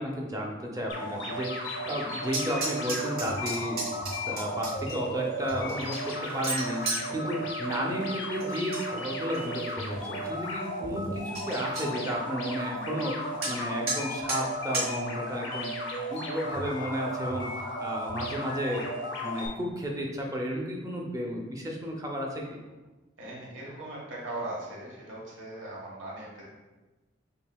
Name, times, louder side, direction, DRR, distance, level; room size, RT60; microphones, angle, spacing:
voice 1, 0.0-3.8 4.1-15.7 16.1-22.6, equal, 20° right, 0 dB, 0.5 m, -33 dB
sound 1, 0.9-19.5, equal, 75° left, 0.6 m, -35 dB
sound 2, 2.3-4.9 5.5-7.0 8.4-8.8 9.2-9.7 10.2-10.3 10.6-10.7 11.0-11.1 11.3-11.8 13.4-13.5 13.9-14.0 14.3-14.4 14.7-14.9, right 3 dB, 55° right, 1.4 m, -33 dB
voice 2, 23.2-26.4, right 1 dB, 85° right, -5 dB, 1.3 m, -39 dB
5.3 x 2.8 x 2.2 m, 1.2 s
head